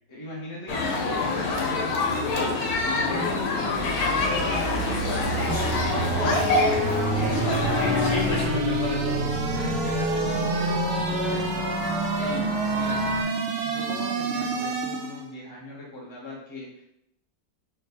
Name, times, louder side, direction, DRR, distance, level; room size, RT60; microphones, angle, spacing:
voice 1, 0.1-4.9 7.1-7.8 9.5-13.1 13.6-16.8, left 1 dB, 20° left, -4 dB, 0.9 m, -39 dB
sound 1, 0.7-8.5, left 3 dB, 85° left, 1.3 m, -26 dB
sound 2, 3.3-15.3, right 4 dB, 75° right, 0.5 m, -29 dB
voice 2, 5.5-6.5 7.2-9.4, left 1 dB, 60° left, -4 dB, 1.5 m, -32 dB
sound 3, 5.5-13.2, left 2 dB, 5° left, 1.2 m, -30 dB
4.5 x 2.4 x 4.2 m, 0.77 s
omnidirectional pair, 1.6 m